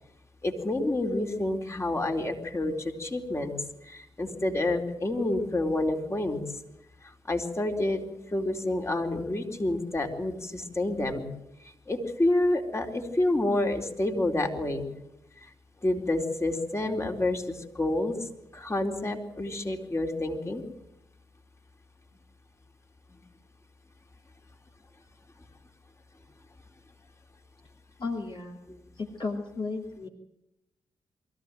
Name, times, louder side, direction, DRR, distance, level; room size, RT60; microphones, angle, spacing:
voice 1, 0.4-3.5 3.8-6.4 7.3-11.3 11.9-14.9 15.4-15.5 15.8-18.2 18.5-20.6 23.1-23.3, left 1 dB, 25° left, 3 dB, 4.2 m, -28 dB
voice 2, 28.0-28.6 29.0-30.1, left 3 dB, 50° left, 1 dB, 2.9 m, -34 dB
23.5 x 15.0 x 9.2 m, 0.88 s
hypercardioid pair, 40°, 11 cm